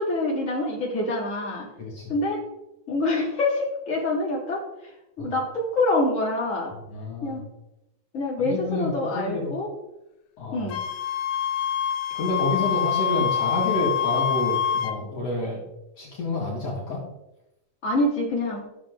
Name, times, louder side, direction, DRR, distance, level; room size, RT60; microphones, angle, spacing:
voice 1, 0.0-1.7 2.1-2.4 2.9-6.7 7.2-7.4 8.1-9.7 10.5-10.8 17.8-18.6, left 2 dB, 25° left, -4 dB, 3.2 m, -26 dB
voice 2, 1.8-2.1 5.2-5.3 6.7-7.4 8.4-9.5 10.4-10.7 12.1-15.6 16.0-17.0, left 2 dB, 55° left, -4 dB, 3.0 m, -29 dB
Wind instrument woodwind instrument, 10.7-15.0, left 8 dB, 80° left, 2.3 m, -26 dB
13.5 x 7.2 x 3.7 m, 0.91 s
omnidirectional pair, 3.5 m